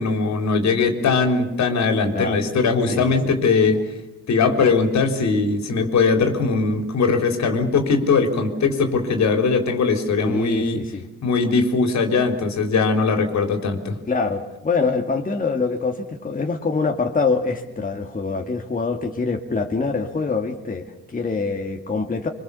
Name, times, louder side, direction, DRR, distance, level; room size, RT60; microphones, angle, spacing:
voice 1, 0.0-3.8 4.3-10.8 11.2-13.9, left 4 dB, 65° left, 5 dB, 3.9 m, -20 dB
voice 2, 2.9-3.3 10.2-11.1 14.1-22.3, left 4 dB, 30° left, 2 dB, 2.2 m, -25 dB
24.5 x 24.5 x 7.0 m, 0.98 s
cardioid pair, 90°, 30 cm